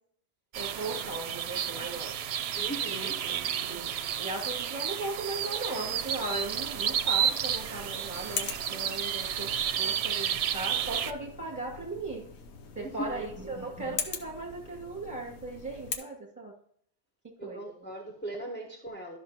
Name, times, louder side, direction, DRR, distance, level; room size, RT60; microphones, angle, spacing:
sound 1, 0.5-11.1, right 9 dB, 70° right, 0.8 m, -31 dB
voice 1, 0.6-2.1 2.8-3.9 4.2-9.5 9.8-12.2 12.8-16.5 17.4-17.6, right 2 dB, 15° right, -2 dB, 2.3 m, -37 dB
voice 2, 2.5-3.1 12.7-13.2 17.4-19.2, right 1 dB, 10° left, 0 dB, 0.9 m, -39 dB
sound 2, 5.8-16.0, left 5 dB, 80° left, 1.1 m, -42 dB
12.0 x 6.1 x 2.9 m, 0.64 s
omnidirectional pair, 1.1 m